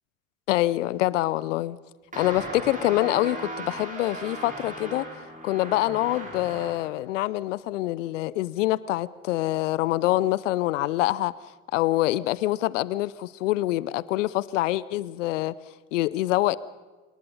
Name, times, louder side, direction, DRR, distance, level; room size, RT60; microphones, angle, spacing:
voice 1, 0.5-1.8 2.2-5.1 5.4-11.3 11.7-15.5 15.9-16.6, left 16 dB, 65° left, 20 dB, 0.7 m, -25 dB
sound 1, 2.1-6.9, right 2 dB, 20° right, 6.6 m, -38 dB
26.5 x 19.0 x 5.6 m, 1.2 s
figure-of-eight pair, 65°, 40 cm